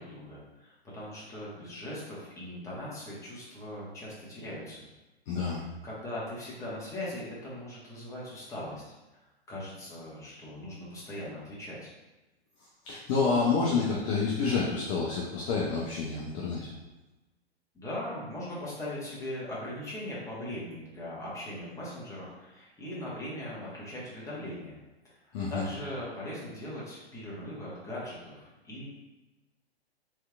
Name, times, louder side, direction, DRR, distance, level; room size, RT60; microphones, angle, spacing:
voice 1, 0.0-4.8 5.8-8.8 9.5-11.9 17.7-24.8 25.1-28.9, left 1 dB, 10° left, -7 dB, 1.2 m, -40 dB
voice 2, 5.3-5.6 12.8-16.7 25.3-25.6, left 4 dB, 30° left, -4 dB, 0.6 m, -28 dB
4.3 x 3.3 x 2.3 m, 1.1 s
figure-of-eight pair, 110°, 32 cm